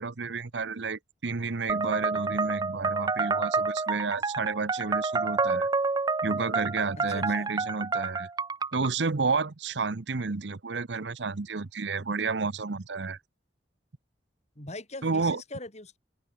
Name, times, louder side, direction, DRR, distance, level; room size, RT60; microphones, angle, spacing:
voice 1, 0.0-5.7 6.2-8.3 8.7-13.2 15.0-15.4, right 4 dB, 80° right, 0.9 m, -31 dB
sound 1, 1.7-8.9, right 4 dB, 25° right, 0.5 m, -29 dB
voice 2, 7.0-7.5 14.6-16.0, left 2 dB, 40° left, 7.1 m, -41 dB
head